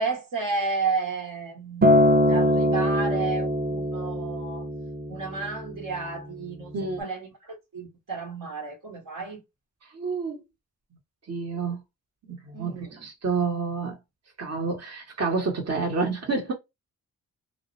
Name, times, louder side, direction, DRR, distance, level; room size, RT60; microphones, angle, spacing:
voice 1, 0.0-4.7 5.1-9.4 12.5-13.1, right 4 dB, 65° right, 1.3 m, -32 dB
Acoustic guitar, 1.8-6.1 6.9-7.0, equal, 25° right, 0.8 m, -23 dB
voice 2, 6.7-7.1 9.9-10.4 11.3-11.8 12.3-14.0 14.4-16.5, right 4 dB, 45° right, 1.2 m, -29 dB
2.5 x 2.1 x 2.5 m
supercardioid pair, 50°, 35 cm